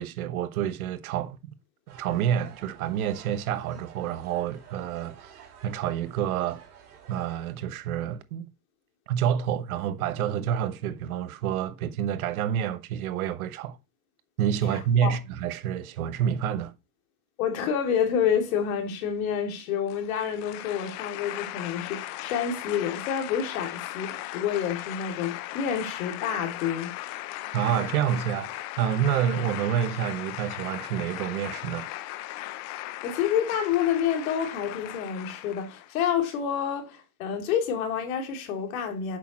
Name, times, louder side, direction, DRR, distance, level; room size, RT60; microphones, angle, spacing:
voice 1, 0.0-1.4 1.9-5.3 5.6-6.6 7.1-8.5 9.1-13.8 14.4-16.7 27.5-31.9, right 9 dB, 70° right, 1.1 m, -28 dB
sound 1, 1.9-7.5, right 8 dB, 85° right, 2.6 m, -51 dB
voice 2, 14.7-15.2 17.4-26.9 32.7-39.2, left 8 dB, 65° left, 2.6 m, -28 dB
sound 2, 19.9-35.9, left 16 dB, 40° left, 0.6 m, -38 dB
8.1 x 6.2 x 3.0 m
hypercardioid pair, 120°, 44 cm